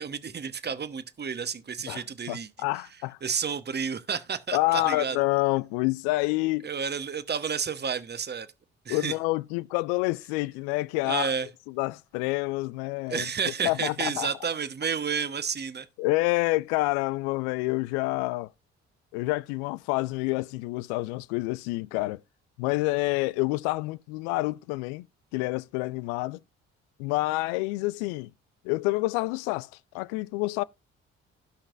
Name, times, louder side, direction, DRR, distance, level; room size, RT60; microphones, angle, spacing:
voice 1, 0.0-2.5 3.2-5.2 6.6-8.5 8.8-9.1 11.0-11.5 13.1-15.9, right 6 dB, 30° right, 1.1 m, -31 dB
voice 2, 2.3-3.2 4.5-6.7 8.9-11.3 11.8-13.3 13.6-14.3 16.0-18.5 19.1-22.2 22.6-25.1 25.3-26.4 27.0-28.3 28.6-29.7 29.9-30.6, left 21 dB, 75° left, 0.5 m, -28 dB
17.0 x 5.9 x 2.5 m
hypercardioid pair, 45°, 34 cm